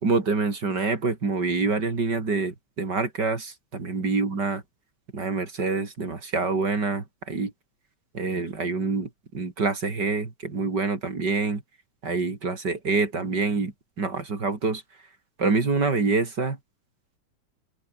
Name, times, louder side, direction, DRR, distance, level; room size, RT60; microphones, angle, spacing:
voice 1, 0.0-4.6 5.1-7.5 8.1-9.1 9.3-11.6 12.0-14.8 15.4-16.6, right 4 dB, 30° right, 3.5 m, -26 dB
omnidirectional pair, 3.7 m